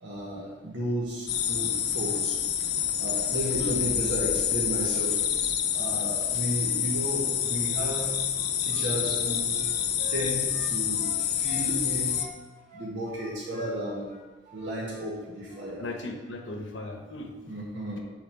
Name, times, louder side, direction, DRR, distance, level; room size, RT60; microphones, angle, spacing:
voice 1, 0.0-2.4 3.0-5.3 5.7-9.6 10.1-12.2 12.7-14.2 14.5-15.9 17.5-18.0, right 1 dB, 80° right, -6 dB, 1.6 m, -33 dB
sound 1, 1.3-12.3, left 9 dB, 60° left, 0.7 m, -28 dB
Wind instrument woodwind instrument, 8.3-11.7 12.0-15.1 15.4-15.6, left 2 dB, 50° right, 2.2 m, -47 dB
voice 2, 15.8-17.6, left 1 dB, 90° left, 4 dB, 1.0 m, -37 dB
7.8 x 4.2 x 5.9 m, 1.2 s
head